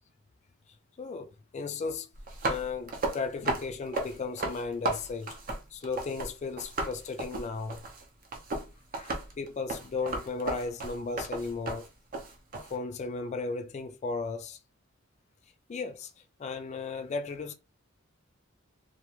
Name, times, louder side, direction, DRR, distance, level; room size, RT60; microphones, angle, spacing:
voice 1, 1.0-2.1 2.4-5.4 5.7-7.8 8.9-11.8 12.7-14.6 15.7-16.1 16.4-17.5, left 4 dB, 35° left, 0.3 m, -35 dB
sound 1, 2.1-6.3 6.6-12.7, right 2 dB, 45° right, 0.6 m, -34 dB
2.4 x 2.2 x 3.0 m
head